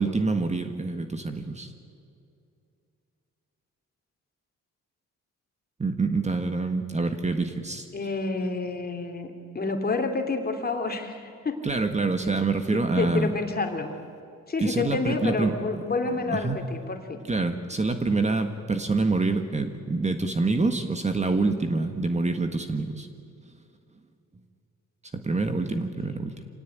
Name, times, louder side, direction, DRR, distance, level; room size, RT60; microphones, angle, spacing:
voice 1, 0.0-1.7 5.8-7.9 11.6-13.3 14.6-15.6 16.3-16.6 17.3-23.1 25.1-26.3, right 3 dB, 25° right, 7 dB, 1.6 m, -26 dB
voice 2, 7.9-11.6 12.7-13.9 14.5-17.2, left 3 dB, 30° left, 5 dB, 2.9 m, -29 dB
26.0 x 17.5 x 9.3 m, 2.5 s
cardioid pair, 90°, 30 cm